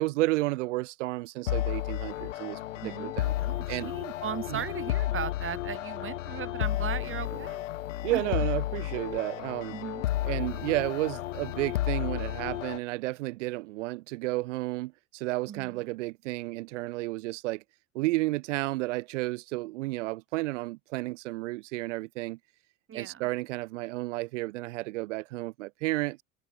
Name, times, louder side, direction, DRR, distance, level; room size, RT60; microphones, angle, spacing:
voice 1, 0.0-2.6 3.0-3.3 3.7-3.9 4.5-4.6 8.0-9.7 10.2-17.6 17.9-22.4 22.9-26.2, right 21 dB, 75° right, 1.5 m, -32 dB
sound 1, 1.5-12.8, left 14 dB, 80° left, 1.6 m, -32 dB
voice 2, 2.7-7.7 8.1-8.2 9.7-10.0 15.5-15.8 22.9-23.3, right 9 dB, 35° right, 1.8 m, -37 dB
hypercardioid pair, 65°, 36 cm